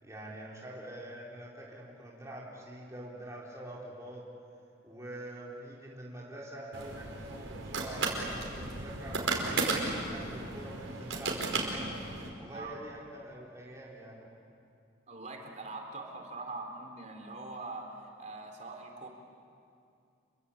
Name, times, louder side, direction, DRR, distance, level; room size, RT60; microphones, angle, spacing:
voice 1, 0.0-4.3 4.8-9.7 10.1-11.9 12.4-14.3, right 1 dB, 15° right, -5 dB, 4.2 m, -45 dB
sound 1, 6.7-12.3, right 3 dB, 90° right, 4.9 m, -34 dB
voice 2, 15.1-19.1, right 3 dB, 40° right, 2 dB, 3.7 m, -43 dB
29.5 x 23.5 x 8.7 m, 2.4 s
head